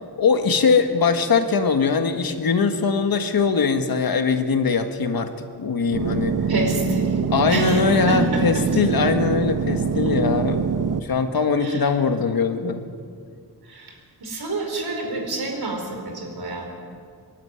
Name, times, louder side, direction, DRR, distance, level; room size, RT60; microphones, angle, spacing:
voice 1, 0.2-6.3 7.3-10.7 11.0-12.8, left 5 dB, 70° left, 7 dB, 1.5 m, -21 dB
sound 1, 5.9-11.0, right 6 dB, 55° right, 0.8 m, -24 dB
voice 2, 6.5-7.1 7.5-8.7 11.6-11.8 13.7-13.9 14.2-16.7, right 2 dB, 80° right, 2 dB, 4.6 m, -28 dB
24.0 x 12.0 x 9.5 m, 2.2 s
wide cardioid pair, 175°, 37 cm